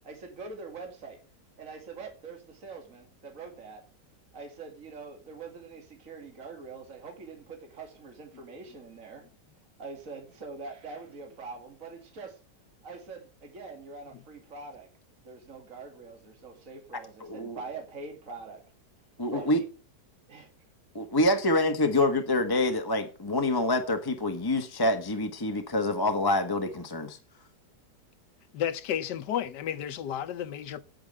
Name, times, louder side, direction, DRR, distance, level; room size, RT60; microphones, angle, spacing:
voice 1, 0.0-1.2 1.6-3.8 4.3-9.2 9.8-12.4 12.8-14.9 15.2-18.6 19.3-19.6 20.3-20.5, right 4 dB, 50° right, 2.5 m, -44 dB
voice 2, 17.2-17.6 19.2-19.6 20.9-27.2, left 1 dB, 15° left, 1.2 m, -26 dB
voice 3, 28.5-30.8, left 10 dB, 80° left, 1.5 m, -32 dB
9.2 x 8.9 x 7.7 m
omnidirectional pair, 1.8 m